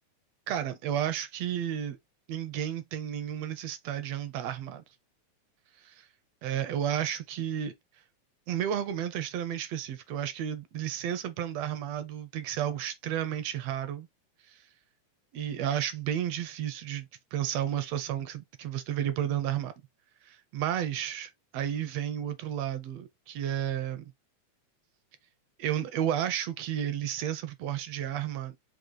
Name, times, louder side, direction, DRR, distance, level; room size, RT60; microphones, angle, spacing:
voice 1, 0.5-2.0 2.3-4.8 6.4-7.7 8.5-14.1 14.5-14.6 15.3-17.1 17.3-19.7 20.2-24.1 25.6-28.5, right 10 dB, 75° right, 1.5 m, -32 dB
5.1 x 2.7 x 3.8 m
omnidirectional pair, 3.3 m